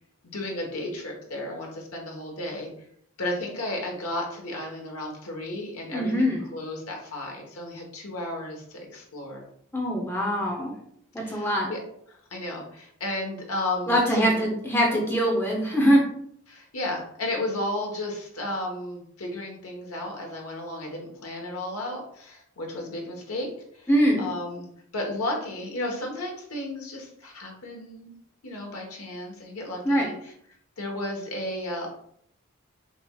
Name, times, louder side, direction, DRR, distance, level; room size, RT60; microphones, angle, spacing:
voice 1, 0.3-2.7 3.2-9.4 11.2-11.8 12.1-14.4 16.5-23.9 24.2-24.7 24.9-28.1 28.4-30.3 30.8-31.9, left 1 dB, 90° left, 1 dB, 1.2 m, -33 dB
voice 2, 5.9-6.5 9.7-10.7 11.1-11.7 13.9-16.0 23.9-24.3 29.8-30.1, equal, 10° left, -1 dB, 0.7 m, -23 dB
6.0 x 3.0 x 2.3 m, 0.67 s
head